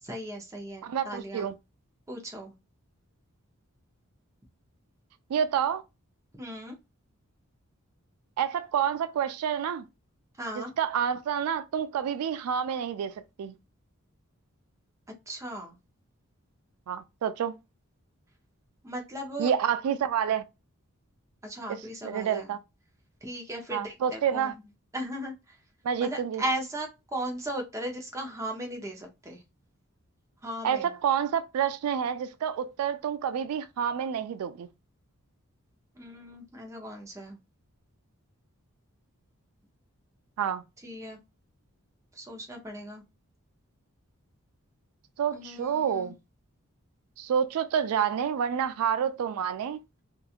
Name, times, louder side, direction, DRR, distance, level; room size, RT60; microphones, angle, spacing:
voice 1, 0.0-1.5 2.1-2.5 6.4-6.8 10.4-10.7 15.3-15.8 18.8-19.5 21.4-22.5 23.2-24.5 24.9-25.6 26.0-29.4 30.4-30.9 35.9-37.4 40.8-41.2 42.2-43.0 45.3-46.1, right 1 dB, 15° right, 0.6 m, -37 dB
voice 2, 0.8-1.5 5.3-5.8 8.4-9.9 10.5-13.5 16.9-17.5 19.4-20.4 21.7-22.6 23.7-24.5 25.8-26.4 30.6-34.7 40.4-40.6 45.2-46.2 47.2-49.8, right 8 dB, 85° right, 0.3 m, -28 dB
2.8 x 2.3 x 2.4 m
head